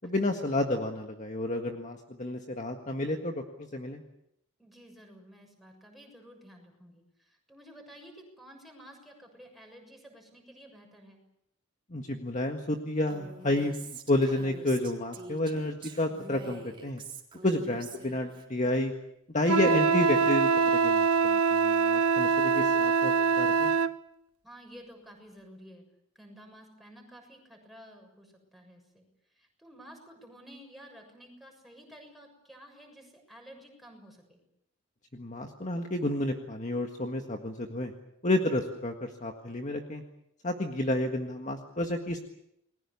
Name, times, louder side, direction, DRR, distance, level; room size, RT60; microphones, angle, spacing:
voice 1, 0.0-4.0 11.9-17.0 17.4-18.9 19.3-23.7 35.1-37.9 38.2-40.0 40.4-42.2, left 1 dB, 35° left, 3 dB, 1.8 m, -30 dB
voice 2, 4.6-11.2 17.4-17.5 24.4-25.8 26.2-29.0 29.3-34.4, equal, ahead, 1 dB, 6.9 m, -52 dB
Female speech woman speaking, 13.1-18.4, right 4 dB, 25° right, 3.8 m, -46 dB
Wind instrument woodwind instrument, 19.5-23.9, right 5 dB, 75° right, 1.1 m, -24 dB
29.5 x 21.0 x 7.1 m, 0.77 s
head